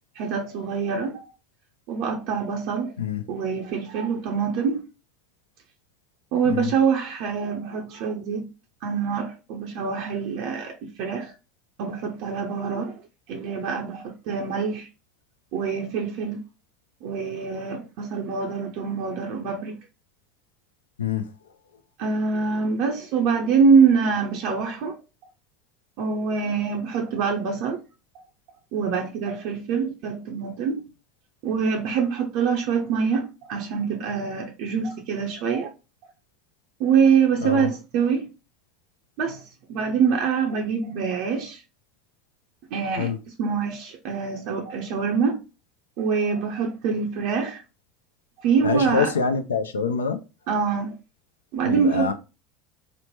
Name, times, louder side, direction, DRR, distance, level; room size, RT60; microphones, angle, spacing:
voice 1, 0.2-1.2 1.9-2.9 3.3-4.9 6.3-8.5 8.8-11.3 11.8-13.0 13.3-14.9 15.5-16.4 17.0-19.8 22.0-25.0 26.0-27.8 28.7-30.8 31.4-35.7 36.8-38.3 39.2-41.6 42.7-43.1 43.4-45.4 46.0-47.6 48.4-49.1 50.5-51.0 51.5-52.1, right 6 dB, 60° right, 0.5 m, -24 dB
voice 2, 37.4-37.7 43.0-43.2 48.6-50.2 51.6-52.1, left 6 dB, 85° left, 0.3 m, -25 dB
3.0 x 2.0 x 3.0 m
hypercardioid pair, 75°, 0 cm